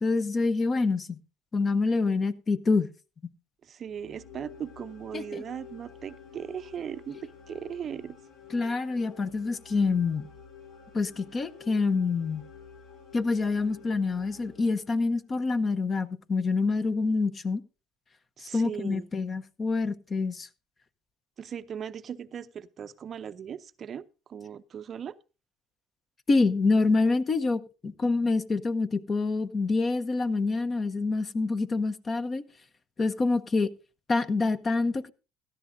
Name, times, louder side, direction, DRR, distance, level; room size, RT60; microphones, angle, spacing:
voice 1, 0.0-1.2 1.5-2.9 5.1-5.4 8.5-10.2 10.9-12.4 13.1-17.6 18.5-20.5 26.3-32.4 33.0-33.7 34.1-35.1, left 3 dB, 30° left, 0.8 m, -26 dB
voice 2, 3.6-8.2 18.4-19.1 21.4-25.1, right 8 dB, 40° right, 0.5 m, -38 dB
sound 1, 3.8-15.2, left 6 dB, 65° left, 4.3 m, -50 dB
17.0 x 13.0 x 2.6 m
supercardioid pair, 100°, 0 cm